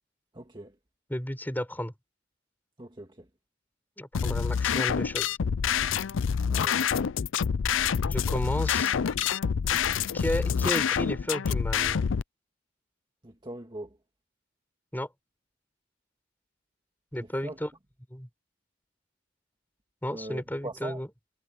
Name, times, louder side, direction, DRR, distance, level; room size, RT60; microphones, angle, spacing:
voice 1, 0.4-0.7 2.8-3.1 6.5-6.8 13.2-13.9 17.4-17.6 20.1-21.0, right 1 dB, 25° right, 1.7 m, -40 dB
voice 2, 1.1-1.9 4.0-5.3 8.1-8.9 10.1-12.1 14.9-15.1 17.1-17.7 18.1-18.3 20.0-21.1, equal, 10° left, 7.1 m, -33 dB
sound 1, 4.1-12.2, left 7 dB, 90° left, 0.5 m, -27 dB
head